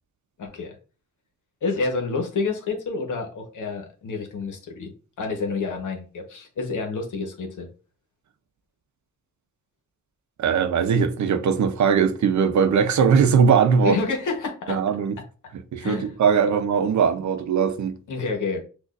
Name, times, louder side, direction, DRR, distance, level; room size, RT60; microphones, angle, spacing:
voice 1, 0.4-0.8 1.6-4.9 5.2-7.7 13.8-14.8 15.8-16.1 18.1-18.6, left 4 dB, 75° left, 1.1 m, -28 dB
voice 2, 10.4-14.0 14.7-15.2 15.7-17.9, right 6 dB, 65° right, 0.6 m, -20 dB
6.3 x 2.5 x 2.5 m
wide cardioid pair, 120°, 31 cm